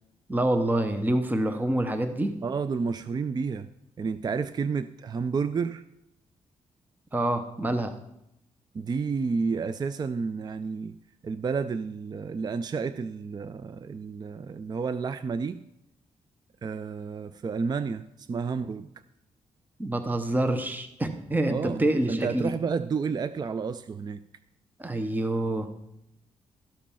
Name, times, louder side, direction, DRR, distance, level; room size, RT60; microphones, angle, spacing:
voice 1, 0.3-2.3 7.1-7.9 19.8-22.5 24.8-25.7, right 1 dB, 15° right, 8 dB, 0.8 m, -26 dB
voice 2, 2.4-3.7 4.0-5.8 8.7-10.9 11.2-15.6 16.6-18.9 21.4-24.2, right 5 dB, 35° right, 13 dB, 0.4 m, -30 dB
13.0 x 5.2 x 5.6 m, 0.82 s
cardioid pair, 90°, 13 cm